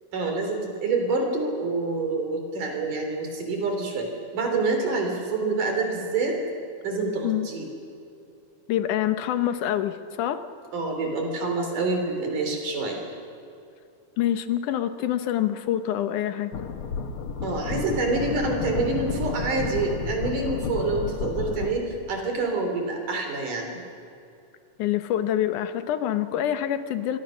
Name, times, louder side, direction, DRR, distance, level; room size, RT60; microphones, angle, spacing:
voice 1, 0.1-6.4 6.8-7.7 10.7-13.0 17.4-23.8, right 3 dB, 75° right, 3 dB, 4.8 m, -27 dB
voice 2, 8.7-10.4 14.2-16.5 24.8-27.2, left 11 dB, 75° left, 10 dB, 2.5 m, -26 dB
sound 1, 16.5-21.7, left 5 dB, 55° left, 1.7 m, -31 dB
25.5 x 23.5 x 6.4 m, 2.6 s
omnidirectional pair, 3.7 m